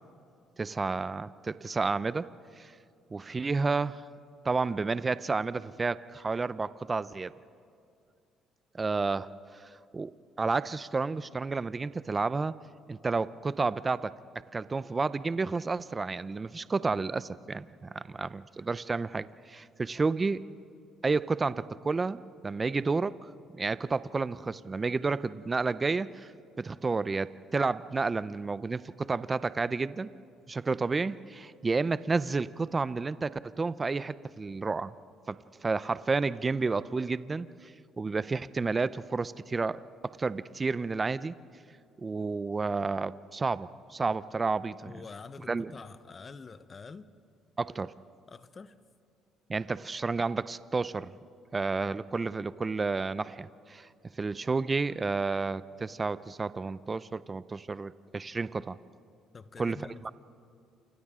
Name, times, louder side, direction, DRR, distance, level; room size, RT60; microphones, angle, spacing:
voice 1, 0.6-2.3 2.6-2.7 3.1-4.0 4.4-7.3 8.7-9.3 9.5-10.1 10.4-12.5 12.9-14.1 14.5-20.4 21.0-26.3 26.6-30.1 30.5-34.9 35.3-35.4 35.6-41.3 42.0-44.9 45.5-45.7 47.6-47.9 49.5-51.1 51.5-53.9 54.2-58.8 59.6-59.8 60.0-60.1, right 4 dB, 25° right, 16 dB, 0.5 m, -31 dB
voice 2, 44.9-47.0 48.3-48.7 59.3-60.1, left 4 dB, 30° left, 13 dB, 0.9 m, -46 dB
29.0 x 28.5 x 3.7 m, 2.4 s
cardioid pair, 100°, 0 cm